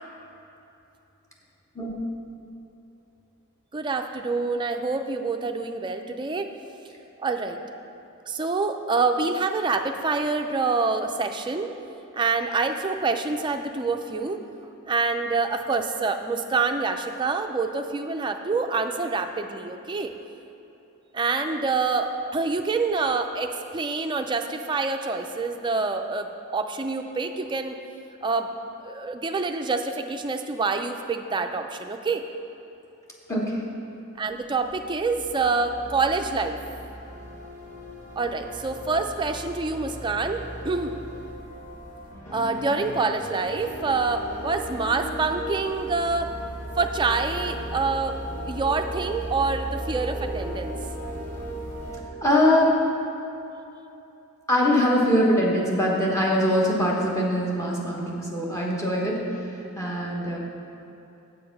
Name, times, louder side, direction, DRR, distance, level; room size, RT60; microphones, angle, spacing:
voice 1, 3.7-6.5 7.2-7.6 8.3-11.7 12.1-14.4 14.9-20.1 21.1-26.3 26.5-27.8 28.2-28.5 28.8-32.2 34.2-36.6 38.2-41.0 42.3-46.3 46.8-48.1 48.5-50.7, right 4 dB, 20° right, 5 dB, 0.4 m, -26 dB
voice 2, 33.3-33.6 52.2-52.8 54.5-59.2 59.8-60.4, left 1 dB, 15° left, -3 dB, 1.1 m, -22 dB
sound 1, 34.2-52.0, right 1 dB, 85° left, 2.1 m, -36 dB
7.6 x 6.8 x 5.3 m, 2.9 s
head